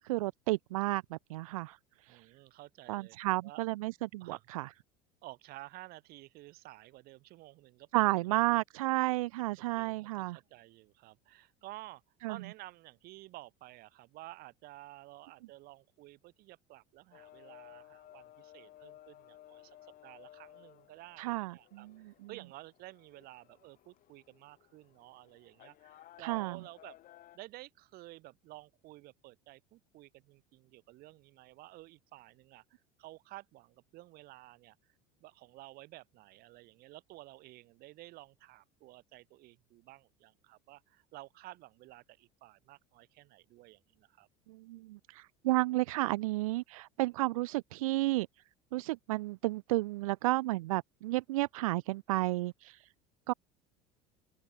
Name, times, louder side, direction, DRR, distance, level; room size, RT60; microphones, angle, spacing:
voice 1, 0.0-1.8 2.0-2.3 2.9-4.7 7.9-10.4 12.2-12.4 21.2-21.9 26.2-26.6 44.5-48.3 48.7-52.9 53.3-53.4, right 19 dB, 90° right, 0.6 m, -32 dB
voice 2, 2.1-3.6 4.2-4.5 5.2-7.9 8.2-8.4 9.6-12.0 12.3-27.0 27.3-34.9 35.2-44.3, right 18 dB, 60° right, 7.8 m, -52 dB
sound 1, 17.1-27.4, left 13 dB, 55° left, 7.8 m, -58 dB
open air
supercardioid pair, 95°, 17 cm